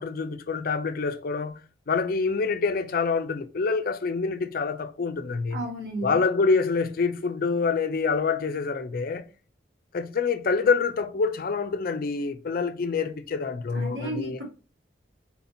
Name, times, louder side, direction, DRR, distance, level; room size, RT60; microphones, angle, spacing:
voice 1, 0.0-1.6 1.9-5.6 6.0-9.3 9.9-14.4, left 4 dB, 55° left, 0.5 m, -26 dB
voice 2, 5.5-6.2 13.7-14.4, right 1 dB, 80° right, 2.2 m, -33 dB
4.3 x 2.8 x 4.1 m
head